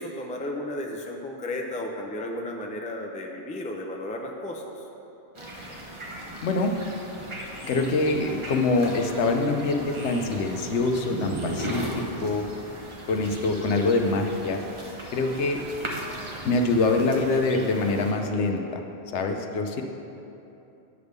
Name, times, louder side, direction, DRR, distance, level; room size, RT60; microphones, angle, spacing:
voice 1, 0.0-4.6, left 1 dB, 10° left, 1 dB, 0.4 m, -33 dB
sound 1, 5.3-18.1, right 1 dB, 30° right, 0.8 m, -37 dB
voice 2, 6.4-6.7 7.6-12.5 13.1-14.6 15.1-15.6 16.4-18.8 19.1-19.8, left 3 dB, 90° left, 4 dB, 1.0 m, -25 dB
9.6 x 3.5 x 6.5 m, 2.9 s
omnidirectional pair, 1.1 m